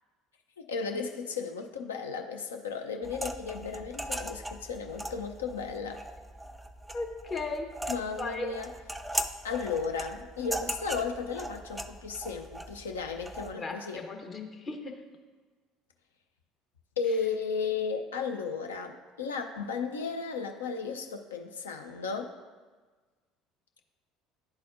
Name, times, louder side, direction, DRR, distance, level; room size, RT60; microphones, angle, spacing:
voice 1, 0.6-6.0 7.9-8.7 9.4-14.0 17.0-22.3, left 5 dB, 75° left, 4 dB, 0.5 m, -34 dB
sound 1, 3.0-13.5, right 1 dB, 5° right, 0.4 m, -39 dB
voice 2, 6.9-7.7 8.2-8.5 13.6-15.0, left 3 dB, 35° left, 3 dB, 0.9 m, -36 dB
10.5 x 4.1 x 2.5 m, 1.4 s
figure-of-eight pair, 60°, 0 cm